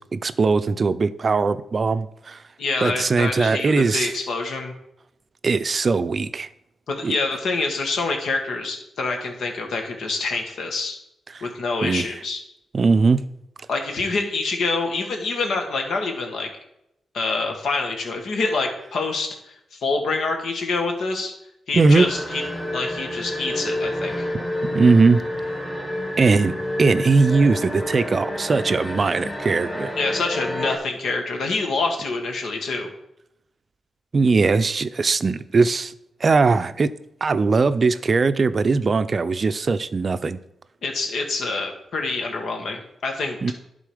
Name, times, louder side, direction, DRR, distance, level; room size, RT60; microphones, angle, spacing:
voice 1, 0.0-2.4 2.8-4.1 5.4-6.5 7.0-7.2 11.3-11.5 11.8-12.1 12.7-13.2 21.7-22.1 24.3-24.4 24.7-25.2 26.2-29.9 34.1-35.9 36.2-36.9 37.2-40.4 43.4-43.5, right 4 dB, 45° right, 0.5 m, -20 dB
voice 2, 2.6-4.7 6.9-11.0 11.4-12.4 13.7-16.5 17.1-21.3 21.7-24.3 30.0-32.9 40.8-43.5, left 3 dB, 75° left, 1.6 m, -26 dB
sound 1, 22.0-30.8, left 1 dB, 15° left, 1.8 m, -29 dB
11.0 x 3.9 x 5.0 m
cardioid pair, 70°, 0 cm